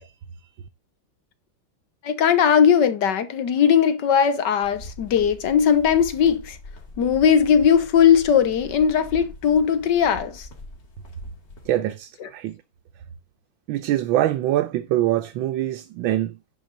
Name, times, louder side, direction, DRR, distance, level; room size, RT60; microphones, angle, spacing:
voice 1, 2.0-6.6 7.0-10.5, left 8 dB, 60° left, 1.7 m, -19 dB
sound 1, 4.6-11.7, left 1 dB, 45° left, 2.4 m, -42 dB
voice 2, 11.6-12.6 13.7-16.4, right 13 dB, 75° right, 1.5 m, -24 dB
10.5 x 3.9 x 6.4 m
omnidirectional pair, 2.2 m